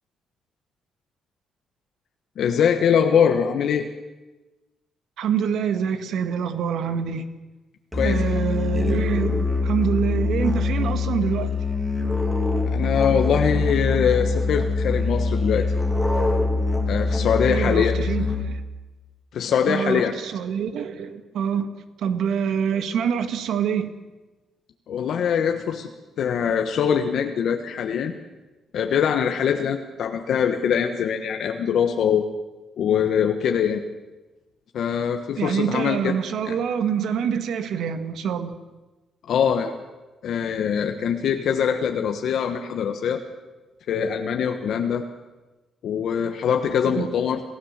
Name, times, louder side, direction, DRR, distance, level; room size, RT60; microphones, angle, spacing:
voice 1, 2.4-3.9 7.9-8.2 12.7-15.7 16.9-17.9 19.3-20.1 24.9-25.9 26.2-28.2 28.7-32.2 32.8-33.8 34.7-36.2 36.4-36.5 39.3-39.7 40.2-43.2 43.9-45.0 45.8-47.4, left 7 dB, 60° left, 5 dB, 1.3 m, -23 dB
voice 2, 5.2-7.3 8.0-11.6 17.5-18.6 19.7-21.7 22.0-23.9 35.4-38.5 46.9-47.1, right 7 dB, 70° right, 9 dB, 1.8 m, -26 dB
Musical instrument, 7.9-18.7, left 3 dB, 5° right, 2.9 m, -24 dB
28.0 x 16.5 x 7.4 m, 1.2 s
cardioid pair, 165°, 0 cm